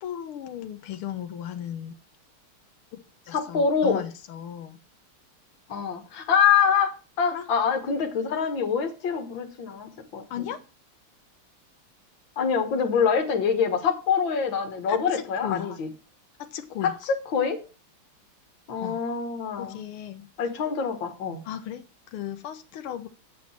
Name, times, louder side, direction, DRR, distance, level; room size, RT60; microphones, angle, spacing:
voice 1, 0.0-1.9 2.9-3.0 3.3-4.8 7.3-7.5 10.3-10.6 14.9-15.8 16.4-16.9 18.8-19.0 19.6-20.3 21.4-23.1, left 10 dB, 80° left, 7 dB, 1.9 m, -36 dB
voice 2, 3.3-4.0 5.7-6.9 7.2-10.2 12.4-15.9 16.8-16.9 17.3-17.6 18.7-19.8 20.4-21.4, left 6 dB, 60° left, 6 dB, 2.3 m, -25 dB
8.5 x 6.2 x 7.3 m, 0.34 s
omnidirectional pair, 2.4 m